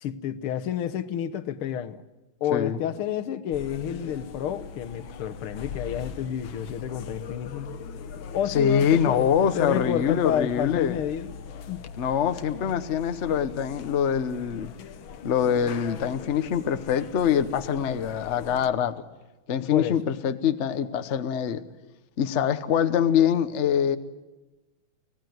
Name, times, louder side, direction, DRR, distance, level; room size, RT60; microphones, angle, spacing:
voice 1, 0.0-2.0 2.4-7.7 8.3-9.3 9.6-11.4 11.7-11.8 19.6-20.0, left 10 dB, 85° left, 1.9 m, -30 dB
sound 1, 3.5-18.7, left 7 dB, 70° left, 1.8 m, -41 dB
voice 2, 8.5-11.0 12.0-14.7 15.2-19.0 19.5-21.6 22.2-24.0, left 8 dB, 45° left, 1.0 m, -24 dB
25.0 x 17.0 x 9.3 m
omnidirectional pair, 2.3 m